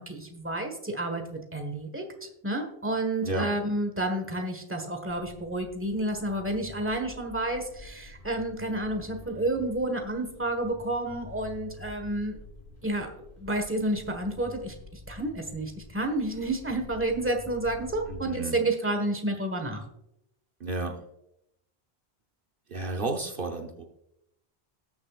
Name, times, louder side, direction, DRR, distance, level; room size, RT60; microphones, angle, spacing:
voice 1, 0.0-2.0 2.4-12.4 12.8-13.1 13.4-19.8, right 1 dB, 10° right, 4 dB, 1.4 m, -30 dB
sound 1, 5.1-18.2, left 3 dB, 35° left, 3.4 m, -48 dB
voice 2, 18.1-18.6 20.6-21.0 22.7-23.8, right 2 dB, 60° right, 3 dB, 1.1 m, -32 dB
19.5 x 6.9 x 2.4 m, 0.80 s
omnidirectional pair, 1.0 m